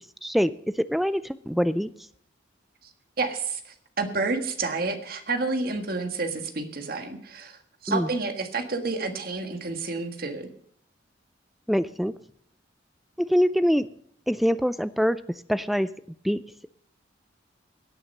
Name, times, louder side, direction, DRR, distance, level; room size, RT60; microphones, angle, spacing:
voice 1, 0.8-1.9 7.9-8.1 11.7-12.1 13.2-13.9 14.3-15.2 15.5-15.9 16.2-16.4, equal, ahead, 14 dB, 0.4 m, -24 dB
voice 2, 3.2-3.6 4.0-10.5, right 3 dB, 50° right, 6 dB, 1.6 m, -29 dB
17.0 x 9.0 x 5.4 m, 0.66 s
head